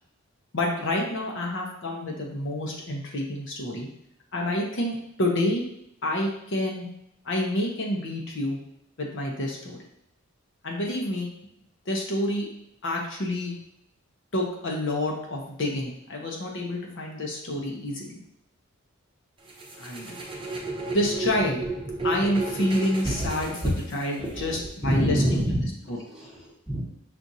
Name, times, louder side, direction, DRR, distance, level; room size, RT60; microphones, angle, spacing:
voice 1, 0.5-3.9 4.3-5.6 6.0-6.9 7.2-8.6 9.0-9.8 10.6-11.3 11.9-12.5 12.8-13.5 14.3-18.2 19.8-20.2 20.9-21.6 22.0-23.5 23.9-25.4 25.9-26.0, left 1 dB, 60° left, -1 dB, 0.7 m, -28 dB
sound 1, 19.5-24.4, right 2 dB, 25° right, 0.7 m, -33 dB
voice 2, 23.0-23.7 24.2-26.8, equal, 5° right, -6 dB, 1.0 m, -28 dB
6.0 x 2.5 x 2.7 m, 0.76 s
head